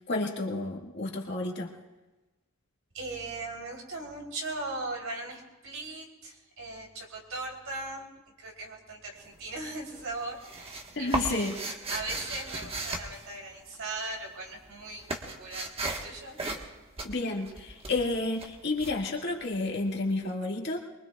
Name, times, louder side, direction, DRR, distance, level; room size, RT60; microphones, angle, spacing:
voice 1, 0.1-1.7 10.9-11.6 17.0-20.8, left 2 dB, 50° left, 0 dB, 1.9 m, -31 dB
voice 2, 2.9-8.1 8.4-11.6 11.9-15.1 15.4-16.4, right 2 dB, 70° right, 0 dB, 3.3 m, -39 dB
sound 1, 9.2-9.7 10.0-14.0 14.3-19.9, right 2 dB, 25° right, 1.3 m, -36 dB
23.5 x 23.0 x 2.4 m, 1.1 s
head